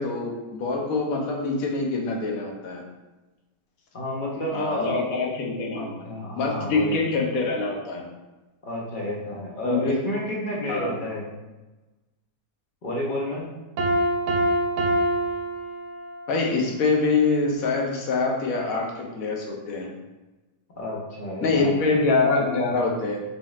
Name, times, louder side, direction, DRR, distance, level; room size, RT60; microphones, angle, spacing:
voice 1, 0.0-2.8 4.5-5.9 6.4-8.1 9.6-9.9 10.7-10.9 16.3-19.9 21.4-23.2, left 3 dB, 65° left, 0 dB, 1.0 m, -25 dB
voice 2, 3.9-5.0 5.7-7.0 8.6-11.2 12.8-13.5 20.8-21.8, left 1 dB, 45° left, -3 dB, 0.7 m, -30 dB
Piano, 13.8-16.3, right 1 dB, 80° right, 1.2 m, -25 dB
4.0 x 3.4 x 2.4 m, 1.1 s
omnidirectional pair, 1.8 m